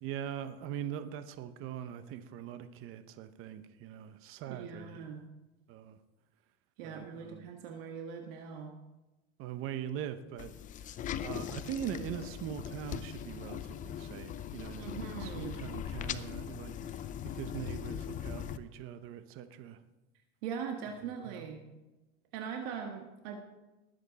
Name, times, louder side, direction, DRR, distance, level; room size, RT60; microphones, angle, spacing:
voice 1, 0.0-5.0 5.7-6.0 6.8-7.4 9.4-10.5 11.2-16.7 17.3-19.8 21.2-21.5, right 10 dB, 40° right, 10 dB, 0.9 m, -42 dB
voice 2, 4.5-5.2 6.8-8.7 14.8-15.6 20.4-21.6 22.3-23.4, right 7 dB, 65° right, 3 dB, 1.6 m, -41 dB
sound 1, 10.4-18.6, left 9 dB, 25° left, 0.5 m, -40 dB
19.5 x 8.0 x 4.1 m, 1.1 s
supercardioid pair, 130°, 32 cm